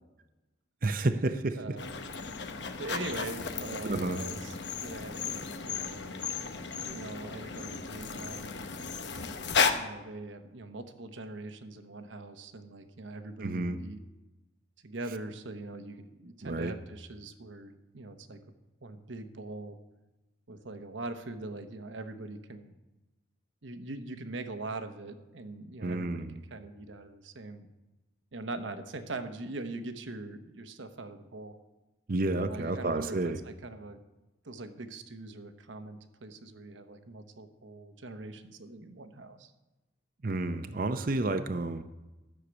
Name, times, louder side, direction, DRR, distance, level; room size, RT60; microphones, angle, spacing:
voice 1, 0.8-1.6 3.8-4.2 13.4-13.8 16.4-16.7 25.8-26.4 32.1-33.4 40.2-41.8, right 2 dB, 45° right, 9 dB, 0.6 m, -30 dB
voice 2, 1.6-2.0 2.8-4.5 4.8-6.2 6.8-8.6 9.7-14.0 14.8-18.4 18.8-19.8 20.5-22.7 23.6-26.2 26.5-27.7 28.3-31.5 32.3-33.2 33.4-34.0 34.4-39.5, right 2 dB, 80° right, 9 dB, 1.0 m, -42 dB
sound 1, 1.8-9.7, left 5 dB, 65° left, 0.9 m, -34 dB
13.0 x 6.6 x 8.0 m, 1.1 s
head